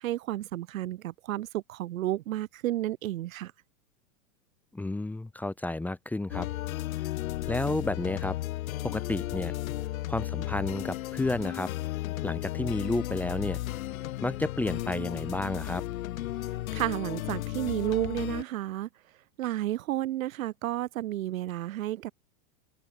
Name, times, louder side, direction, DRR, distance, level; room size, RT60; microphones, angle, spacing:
voice 1, 0.0-3.5 16.7-18.9 19.4-22.1, right 14 dB, 65° right, 4.9 m, -31 dB
voice 2, 4.7-6.5 7.0-7.1 7.5-8.4 8.8-9.5 10.1-11.7 12.2-13.6 14.2-15.8, left 2 dB, 5° left, 1.8 m, -31 dB
sound 1, 6.3-18.4, left 15 dB, 65° left, 1.6 m, -34 dB
supercardioid pair, 160°, 44 cm